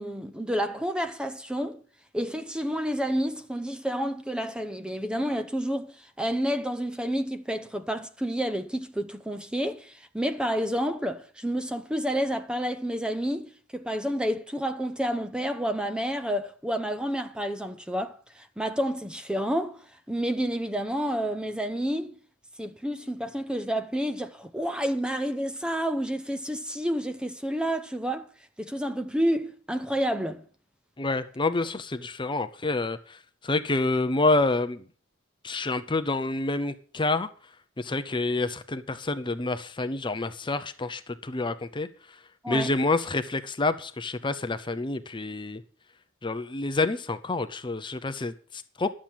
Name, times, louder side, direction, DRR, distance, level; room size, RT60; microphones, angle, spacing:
voice 1, 0.0-1.8 2.1-19.8 20.1-22.2 22.6-28.3 28.6-30.4 42.4-42.7, equal, 5° right, 0.7 m, -29 dB
voice 2, 31.0-34.9 35.4-37.3 37.8-42.2 42.5-45.6 46.2-48.9, left 2 dB, 25° left, 0.7 m, -28 dB
12.0 x 7.5 x 7.2 m
head